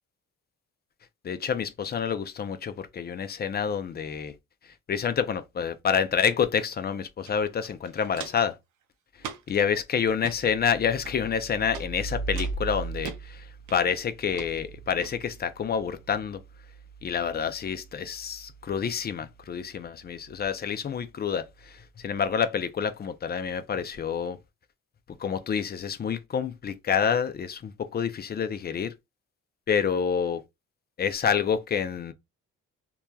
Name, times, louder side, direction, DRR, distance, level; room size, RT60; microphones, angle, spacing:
voice 1, 1.2-4.3 4.6-8.6 9.5-16.4 17.0-24.4 25.2-28.9 29.7-30.4 31.0-32.1, left 7 dB, 35° left, 0.4 m, -28 dB
Walk footsteps, 7.2-7.3 7.6-8.5 9.2-9.6 10.1-10.4 11.0-11.4 11.7-11.9 12.4-13.2 13.7-14.0 14.3-14.5 15.0-15.1, right 7 dB, 80° right, 0.6 m, -40 dB
2.9 x 2.3 x 2.3 m
cardioid pair, 90°, 30 cm